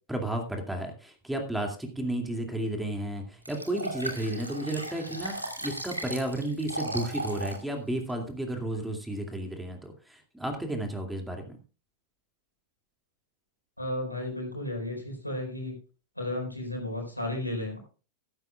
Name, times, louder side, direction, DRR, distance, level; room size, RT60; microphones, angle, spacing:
voice 1, 0.1-5.3 5.6-11.6, right 1 dB, 5° right, 3 dB, 2.4 m, -32 dB
Liquid, 3.4-7.6 8.1-8.2, right 1 dB, 85° right, 2.5 m, -36 dB
voice 2, 13.8-15.7 16.2-17.8, left 1 dB, 90° left, 1 dB, 4.5 m, -33 dB
14.5 x 13.0 x 2.4 m, 0.36 s
figure-of-eight pair, 90°, 0 cm